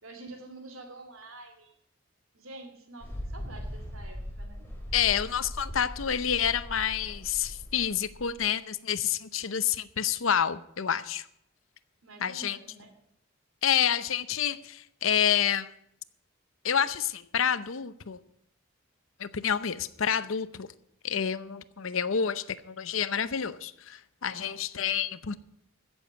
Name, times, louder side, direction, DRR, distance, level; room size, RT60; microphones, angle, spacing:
voice 1, 0.0-1.7 2.3-4.7 12.0-12.9 24.3-24.6, right 2 dB, 85° right, 2.6 m, -47 dB
Mechanical fan, 3.0-8.4, equal, 10° left, 3.1 m, -40 dB
voice 2, 4.9-11.3 12.2-12.6 13.6-15.7 16.6-18.2 19.2-20.7 21.0-25.4, left 8 dB, 70° left, 0.7 m, -28 dB
15.0 x 7.2 x 8.0 m
head